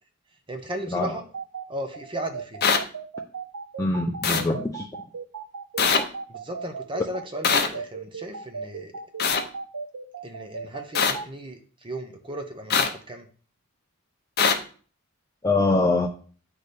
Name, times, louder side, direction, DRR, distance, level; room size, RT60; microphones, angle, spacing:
voice 1, 0.5-1.2 1.7-2.7 6.3-9.0 10.2-13.3, right 1 dB, 20° right, 0.7 m, -36 dB
sound 1, 1.3-11.2, right 5 dB, 85° right, 0.7 m, -36 dB
sound 2, 2.6-2.8 4.2-4.4 5.8-6.0 7.4-7.7 9.2-9.4 11.0-11.1 12.7-12.9 14.4-14.5, left 6 dB, 45° left, 0.8 m, -21 dB
voice 2, 3.8-4.9 15.4-16.1, left 2 dB, 15° left, 0.4 m, -23 dB
9.3 x 3.3 x 4.2 m
head